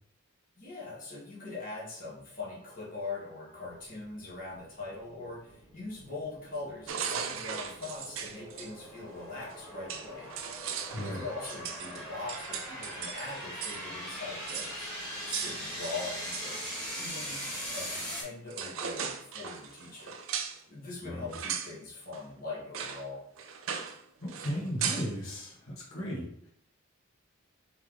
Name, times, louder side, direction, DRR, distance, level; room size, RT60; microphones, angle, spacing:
voice 1, 0.6-10.3 11.0-14.9 15.3-16.6 16.9-17.4 17.7-20.2 20.7-23.2, left 3 dB, 40° left, -6 dB, 1.3 m, -42 dB
sound 1, 3.8-18.2, equal, 5° left, 1.4 m, -41 dB
sound 2, 6.9-8.7 9.5-9.6 9.9-13.8 14.1-14.2 14.5-14.8 15.3-16.8 18.1-18.2 18.5-20.6 21.3-21.7 22.1-22.2 22.7-23.0 23.4-24.0 24.3-25.1, right 7 dB, 70° right, 0.4 m, -37 dB
voice 2, 10.9-11.2 21.0-21.3 24.2-26.5, equal, 80° left, -4 dB, 1.4 m, -36 dB
3.3 x 3.2 x 3.7 m, 0.67 s
head